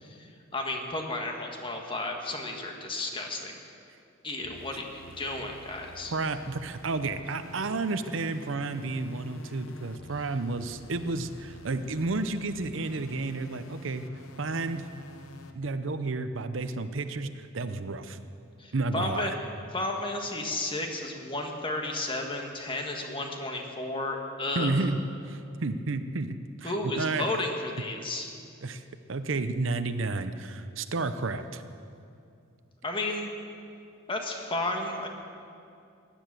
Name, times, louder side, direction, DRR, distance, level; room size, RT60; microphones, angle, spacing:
voice 1, 0.0-3.6 4.2-6.1 18.6-19.3 19.7-24.9 26.6-28.3 32.8-33.3 34.1-35.1, left 2 dB, 25° left, 2 dB, 1.7 m, -33 dB
sound 1, 4.4-15.6, left 1 dB, 90° left, 1.1 m, -48 dB
voice 2, 6.1-14.0 14.4-14.9 15.5-18.2 18.7-19.3 24.6-25.0 25.3-27.3 28.6-28.8 29.1-31.6, right 3 dB, 70° right, 10 dB, 0.7 m, -31 dB
17.5 x 10.5 x 7.6 m, 2.5 s
head